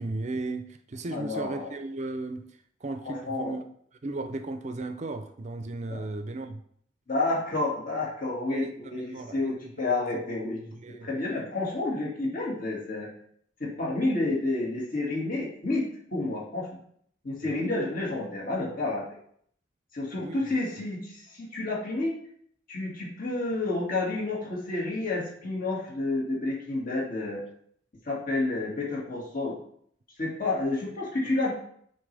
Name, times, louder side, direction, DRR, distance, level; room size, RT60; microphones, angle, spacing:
voice 1, 0.0-2.4 2.8-3.6 4.0-6.6 8.5-9.7 10.7-11.2 17.4-17.9 20.2-20.6, right 2 dB, 40° right, 8 dB, 0.5 m, -36 dB
voice 2, 1.1-1.7 3.1-3.6 5.9-6.0 7.1-13.1 13.6-15.9 16.1-16.7 17.2-19.0 19.9-22.1 22.7-27.4 28.0-29.6 30.2-31.5, left 2 dB, 50° left, -4 dB, 2.1 m, -30 dB
9.7 x 4.4 x 3.4 m, 0.66 s
head